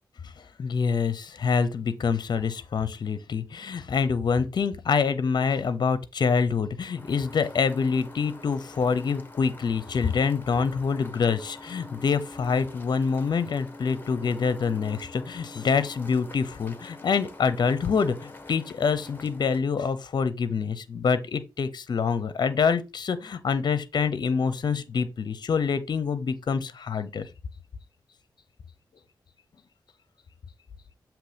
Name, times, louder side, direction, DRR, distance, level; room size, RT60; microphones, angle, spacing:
voice 1, 0.4-27.3, left 5 dB, 65° left, 0.7 m, -26 dB
sound 1, 6.9-19.6, left 2 dB, 25° left, 1.4 m, -45 dB
7.4 x 3.1 x 5.0 m
cardioid pair, 60°, 8 cm